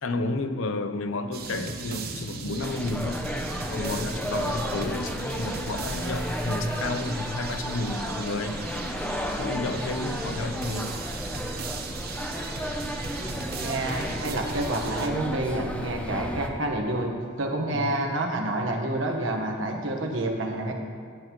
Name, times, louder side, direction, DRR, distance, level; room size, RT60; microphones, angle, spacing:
voice 1, 0.0-3.2 3.7-8.6 9.4-10.9 17.7-18.1, left 2 dB, 80° left, 8 dB, 0.7 m, -31 dB
sound 1, 1.3-15.1, right 3 dB, 50° right, 0.9 m, -37 dB
sound 2, 2.6-16.5, equal, 5° left, 0.6 m, -33 dB
voice 2, 13.6-20.7, right 1 dB, 70° right, 2 dB, 1.3 m, -28 dB
15.0 x 10.0 x 3.1 m, 2.1 s
head